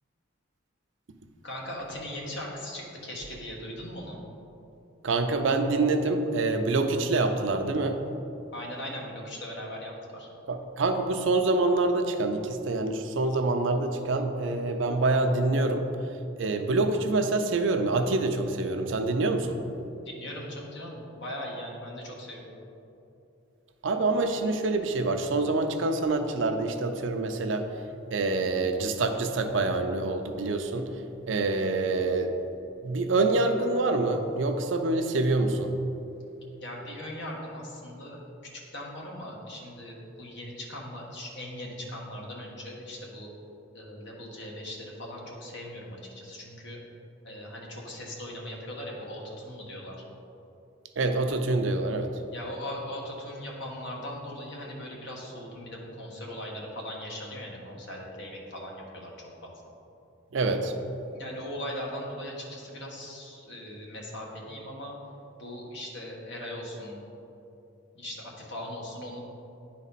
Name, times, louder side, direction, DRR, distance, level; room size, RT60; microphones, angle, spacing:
voice 1, 1.4-4.2 8.5-10.3 20.0-22.5 36.6-38.2 38.5-43.3 43.7-46.8 47.2-50.0 52.3-59.7 61.1-65.0 65.4-67.0 67.9-69.2, left 1 dB, 60° left, -2 dB, 1.4 m, -39 dB
voice 2, 5.0-8.0 10.5-15.9 16.4-19.6 23.8-27.7 28.1-30.9 31.3-32.3 32.8-35.7 51.0-52.1 60.3-60.7, right 2 dB, 65° right, 6 dB, 0.5 m, -26 dB
10.0 x 4.2 x 4.1 m, 2.8 s
head